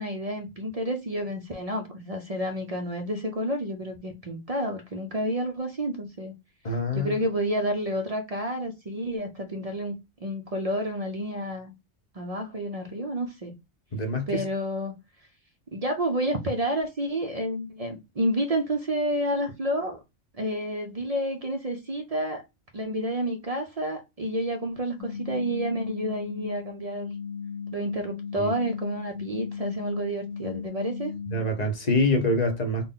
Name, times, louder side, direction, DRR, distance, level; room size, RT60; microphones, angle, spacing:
voice 1, 0.0-6.3 6.9-11.7 12.1-13.5 14.3-14.9 15.7-20.0 20.4-22.4 22.7-27.1 27.7-31.1, equal, 50° right, 0.4 m, -30 dB
voice 2, 6.6-7.1 13.9-14.4 28.4-28.5 31.3-32.9, left 1 dB, 40° left, 0.8 m, -25 dB
sound 1, 25.0-31.4, left 6 dB, 75° left, 1.0 m, -36 dB
4.0 x 2.1 x 3.6 m
omnidirectional pair, 1.3 m